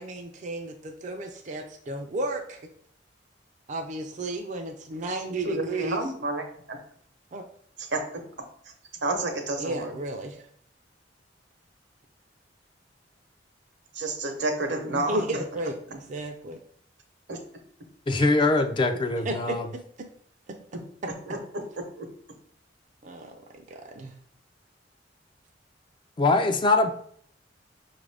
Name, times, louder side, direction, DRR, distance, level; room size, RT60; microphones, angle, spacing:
voice 1, 0.0-2.6 3.7-6.0 7.3-7.4 9.6-10.5 14.9-16.6 19.2-19.6 20.0-20.1 23.0-24.1, right 2 dB, 45° right, 4 dB, 0.4 m, -33 dB
voice 2, 5.4-6.8 7.8-8.0 9.0-9.9 13.9-15.4 17.3-17.4 21.3-21.4 22.0-22.1, right 2 dB, 70° right, 4 dB, 0.8 m, -30 dB
voice 3, 18.1-19.6 26.2-26.9, left 2 dB, 25° left, 7 dB, 0.3 m, -22 dB
5.3 x 2.5 x 3.3 m, 0.62 s
head